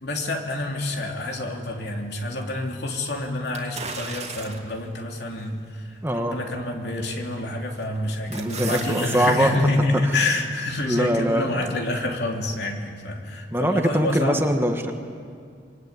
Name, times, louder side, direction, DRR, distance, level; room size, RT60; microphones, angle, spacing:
voice 1, 0.0-5.8 6.1-14.4, left 2 dB, 60° left, 1 dB, 3.2 m, -27 dB
sound 1, 3.5-4.8 5.4-5.5 7.1-7.4 7.8-9.4 9.7-9.8, right 5 dB, 35° right, 2.5 m, -36 dB
voice 2, 6.0-6.4 8.3-9.6 10.0-10.2 10.9-11.7 13.5-14.9, equal, 10° right, 4 dB, 1.4 m, -23 dB
26.0 x 23.5 x 9.7 m, 2.3 s
head